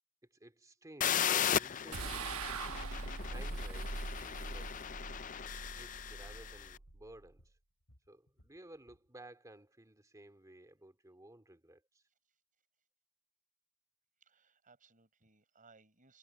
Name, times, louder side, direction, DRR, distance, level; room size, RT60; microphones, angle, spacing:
voice 1, 0.3-2.5 3.3-4.8 5.6-7.5 8.1-12.0, right 1 dB, 15° right, 2.4 m, -56 dB
sound 1, 1.0-6.7, left 9 dB, 35° left, 0.5 m, -36 dB
sound 2, 1.9-7.3, right 3 dB, 80° right, 1.1 m, -42 dB
sound 3, 6.9-7.1 7.4-9.1, equal, 85° left, 6.7 m, -66 dB
voice 2, 14.2-16.2, right 4 dB, 40° right, 7.5 m, -65 dB
head